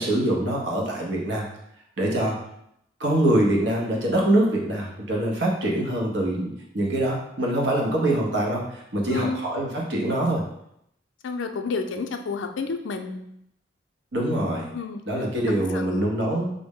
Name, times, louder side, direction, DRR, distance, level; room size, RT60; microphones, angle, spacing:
voice 1, 0.0-1.5 2.0-2.4 3.0-10.4 14.1-14.7 15.1-16.5, right 1 dB, 65° right, -1 dB, 0.8 m, -24 dB
voice 2, 9.1-9.4 11.2-13.2 14.7-15.0 15.7-16.1, left 4 dB, 80° left, 5 dB, 0.4 m, -30 dB
5.1 x 2.0 x 3.6 m, 0.76 s
head